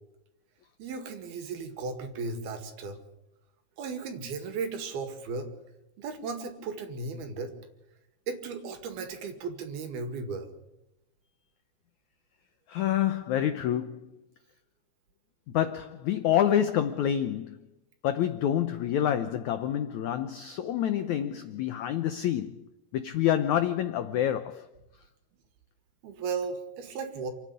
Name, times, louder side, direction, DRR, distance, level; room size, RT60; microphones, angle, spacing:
voice 1, 0.8-3.0 3.8-5.5 6.0-7.5 8.3-10.5 26.0-27.3, right 4 dB, 70° right, 3.9 m, -35 dB
voice 2, 12.7-14.0 15.5-17.6 18.0-22.6 22.9-24.6, left 10 dB, 90° left, 1.6 m, -27 dB
28.0 x 9.8 x 9.7 m
omnidirectional pair, 4.6 m